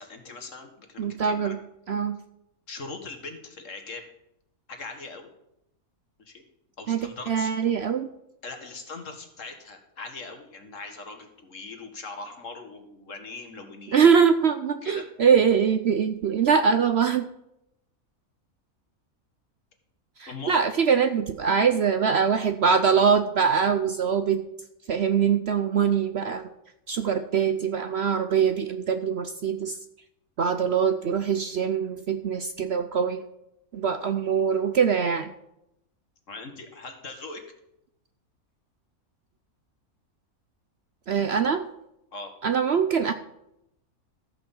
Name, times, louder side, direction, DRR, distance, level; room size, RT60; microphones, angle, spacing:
voice 1, 0.0-1.5 2.7-4.0 4.7-5.3 6.3-6.4 6.8-7.5 8.4-14.1 14.8-15.0 20.3-20.6 36.3-37.4 42.1-42.3, left 3 dB, 60° left, 5 dB, 1.9 m, -40 dB
voice 2, 1.0-1.6 1.9-2.2 6.9-8.1 13.9-17.3 20.2-24.4 24.9-26.4 26.9-29.8 30.4-33.2 33.7-35.3 41.1-41.6 42.4-43.1, right 6 dB, 60° right, 9 dB, 0.8 m, -23 dB
14.0 x 6.1 x 7.1 m, 0.83 s
omnidirectional pair, 1.5 m